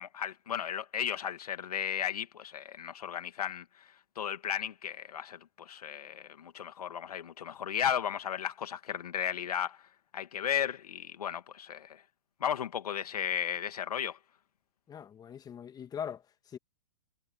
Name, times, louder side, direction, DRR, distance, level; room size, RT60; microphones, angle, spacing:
voice 1, 0.0-9.8 10.1-12.0 12.4-14.2, left 9 dB, 75° left, 2.2 m, -35 dB
voice 2, 14.9-16.6, left 8 dB, 20° left, 1.8 m, -41 dB
hypercardioid pair, 120°, 20 cm